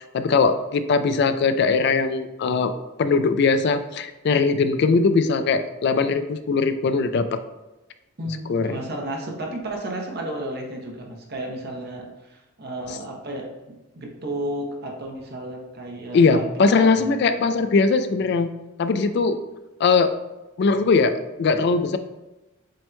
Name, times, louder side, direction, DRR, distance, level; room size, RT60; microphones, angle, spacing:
voice 1, 0.0-2.7 3.0-7.4 8.5-8.8 16.1-18.5 18.8-19.4 19.8-20.1 20.6-22.0, left 4 dB, 50° left, 10 dB, 0.3 m, -20 dB
voice 2, 8.2-17.0, right 1 dB, 50° right, 0 dB, 0.8 m, -33 dB
7.5 x 3.0 x 2.2 m, 1.0 s
head